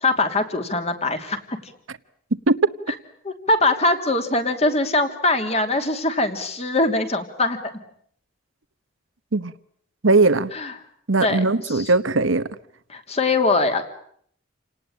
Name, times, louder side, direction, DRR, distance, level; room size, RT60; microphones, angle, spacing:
voice 1, 0.0-1.7 3.2-7.6 10.5-10.7 11.2-11.9 12.9-13.8, left 2 dB, 30° left, 2.9 m, -22 dB
voice 2, 10.0-10.5 11.1-12.5, right 3 dB, 85° right, 1.2 m, -19 dB
29.5 x 19.0 x 10.0 m
head